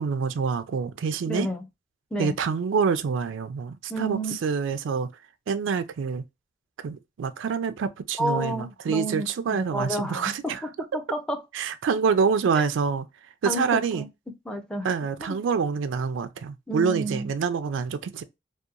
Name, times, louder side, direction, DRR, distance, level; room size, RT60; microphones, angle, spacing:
voice 1, 0.0-1.5 2.2-5.1 5.5-6.2 6.8-10.6 11.5-13.1 13.4-14.0 14.8-18.2, right 5 dB, 85° right, 0.4 m, -26 dB
voice 2, 1.3-1.7 2.1-2.3 3.9-4.3 8.2-11.4 13.4-14.1 14.5-14.9 15.3-15.4 16.7-17.3, right 1 dB, 5° left, 0.4 m, -30 dB
2.8 x 2.2 x 2.4 m
head